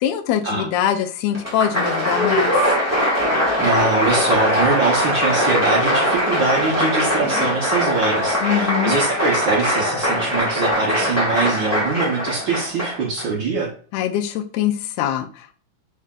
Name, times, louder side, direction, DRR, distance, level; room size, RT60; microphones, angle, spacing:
voice 1, 0.0-2.5 8.4-8.9 13.9-15.5, left 10 dB, 75° left, 8 dB, 1.7 m, -23 dB
Applause, 1.3-13.2, equal, 15° left, 0.6 m, -21 dB
voice 2, 3.6-13.7, right 3 dB, 80° right, -2 dB, 1.0 m, -23 dB
5.4 x 3.7 x 2.4 m, 0.43 s
omnidirectional pair, 3.7 m